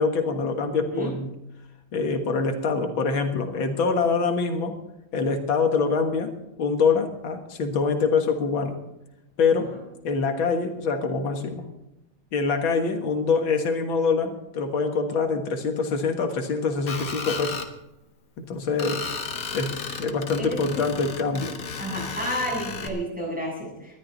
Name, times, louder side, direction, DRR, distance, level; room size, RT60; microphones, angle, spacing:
voice 1, 0.0-1.3 1.9-4.8 5.1-6.3 6.6-8.8 9.4-9.8 10.0-11.7 12.3-17.6 18.4-19.0 19.5-21.5, left 4 dB, 90° left, 5 dB, 2.3 m, -25 dB
Screech, 16.9-17.7 18.8-22.9, left 5 dB, 50° left, 1.7 m, -34 dB
voice 2, 20.4-20.8 21.8-24.0, equal, 5° right, -4 dB, 7.5 m, -31 dB
20.0 x 12.5 x 4.0 m, 0.89 s
omnidirectional pair, 2.1 m